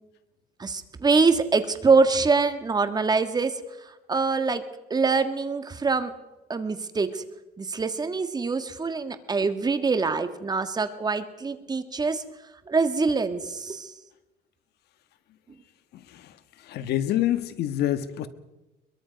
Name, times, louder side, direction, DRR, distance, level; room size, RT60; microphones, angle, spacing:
voice 1, 0.6-3.6 4.1-4.6 4.9-6.1 6.5-7.2 7.6-12.2 12.7-13.9, right 4 dB, 25° right, 9 dB, 1.7 m, -24 dB
voice 2, 16.7-18.3, left 12 dB, 75° left, 12 dB, 1.4 m, -26 dB
22.5 x 22.0 x 5.3 m, 1.1 s
cardioid pair, 110°, 17 cm